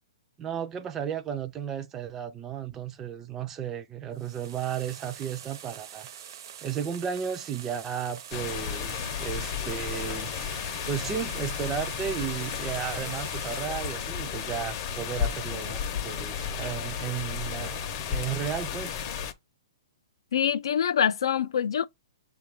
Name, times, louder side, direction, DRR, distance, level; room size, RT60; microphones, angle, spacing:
voice 1, 0.4-6.1 6.6-10.4 10.8-19.0, right 8 dB, 15° right, 0.4 m, -34 dB
sound 1, 4.1-14.0, right 9 dB, 50° right, 0.6 m, -45 dB
sound 2, 8.3-19.3, left 8 dB, 35° left, 0.6 m, -33 dB
voice 2, 20.3-21.9, left 8 dB, 75° left, 0.3 m, -25 dB
6.8 x 2.3 x 3.3 m
hypercardioid pair, 150°, 3 cm